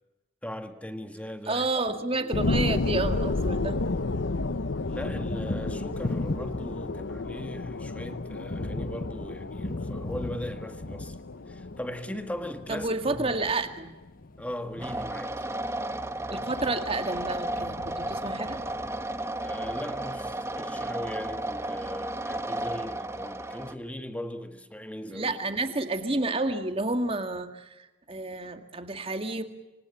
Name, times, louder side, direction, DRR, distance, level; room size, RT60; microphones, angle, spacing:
voice 1, 0.4-1.7 4.8-11.2 11.5-13.3 14.4-15.4 19.4-25.5, left 1 dB, 5° left, 1.6 m, -39 dB
voice 2, 1.5-3.8 12.7-14.0 16.3-18.6 25.1-29.4, right 2 dB, 30° right, 2.0 m, -30 dB
sound 1, 2.3-13.3 13.8-13.9, left 2 dB, 75° left, 0.9 m, -32 dB
Thunder, 2.8-4.0 4.3-19.6, left 2 dB, 45° left, 1.0 m, -39 dB
sound 2, 14.8-23.7, right 1 dB, 15° right, 1.1 m, -33 dB
26.5 x 25.5 x 7.0 m
head